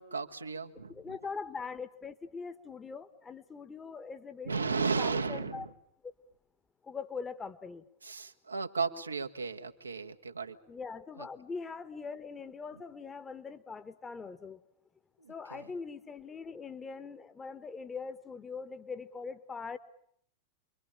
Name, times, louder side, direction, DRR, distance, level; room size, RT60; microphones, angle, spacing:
voice 1, 0.0-1.2 4.4-5.7 8.0-10.6 11.2-11.3 15.2-15.6, right 4 dB, 80° right, 5 dB, 1.6 m, -35 dB
voice 2, 0.9-5.7 6.0-6.1 6.8-7.8 10.7-14.6 15.3-19.8, left 5 dB, 15° left, 11 dB, 1.6 m, -42 dB
28.5 x 23.5 x 8.9 m, 0.67 s
figure-of-eight pair, 90°, 0 cm